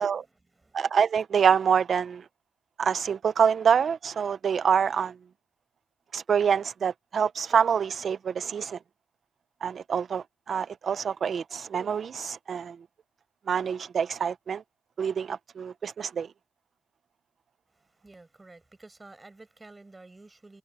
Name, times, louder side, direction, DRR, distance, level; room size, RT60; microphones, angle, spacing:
voice 1, 0.0-0.8 17.7-20.6, right 2 dB, 20° right, 4.9 m, -52 dB
voice 2, 0.7-2.3 2.8-5.1 6.1-8.8 9.6-12.8 13.5-14.6 15.0-16.3, right 7 dB, 50° right, 0.5 m, -26 dB
cardioid pair, 90°, 0 cm